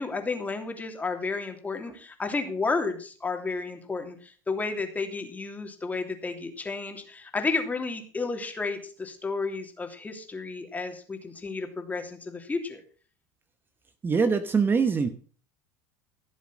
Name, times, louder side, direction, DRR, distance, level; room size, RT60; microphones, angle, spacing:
voice 1, 0.0-12.8, left 4 dB, 15° left, 5 dB, 2.9 m, -32 dB
voice 2, 14.0-15.1, right 5 dB, 25° right, 10 dB, 1.1 m, -23 dB
16.0 x 7.2 x 6.3 m, 0.42 s
supercardioid pair, 105°, 9 cm